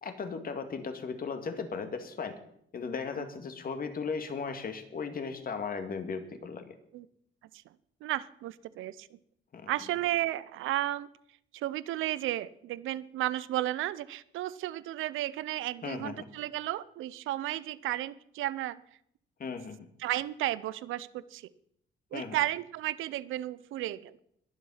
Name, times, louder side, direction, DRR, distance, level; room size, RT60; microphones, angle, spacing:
voice 1, 0.0-2.4 2.7-6.7 9.5-9.7 15.8-16.3 19.4-19.9 22.1-22.4, left 5 dB, 45° left, 7 dB, 2.1 m, -36 dB
voice 2, 8.0-9.2 9.7-11.1 11.5-18.8 20.0-21.4 22.1-24.2, right 14 dB, 85° right, 18 dB, 0.6 m, -33 dB
21.5 x 7.4 x 5.7 m, 0.71 s
cardioid pair, 90°, 20 cm